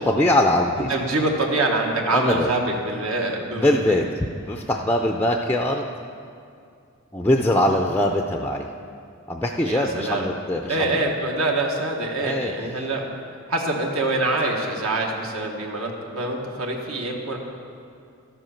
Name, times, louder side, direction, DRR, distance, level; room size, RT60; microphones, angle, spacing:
voice 1, 0.0-0.9 2.1-2.5 3.5-5.9 7.1-8.7 9.3-11.1 12.2-12.5, left 1 dB, 10° left, 2 dB, 0.4 m, -22 dB
voice 2, 0.9-4.0 9.6-10.3 10.7-13.1 13.5-17.4, right 2 dB, 70° right, 0 dB, 1.3 m, -25 dB
12.5 x 7.9 x 5.7 m, 2.4 s
head